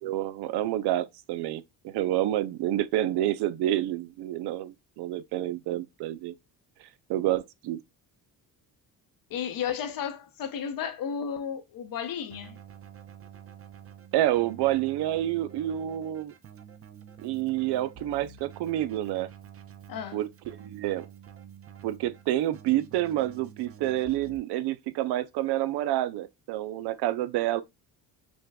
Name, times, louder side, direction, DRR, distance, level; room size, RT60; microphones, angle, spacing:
voice 1, 0.0-6.3 7.1-7.8 14.1-16.3 17.2-19.3 20.1-21.1 21.8-27.6, right 13 dB, 80° right, 0.6 m, -28 dB
voice 2, 9.3-12.6 19.9-20.2, left 8 dB, 55° left, 0.8 m, -33 dB
Keyboard (musical), 12.3-24.4, right 8 dB, 35° right, 0.6 m, -48 dB
6.2 x 2.3 x 2.2 m
cardioid pair, 105°, 40 cm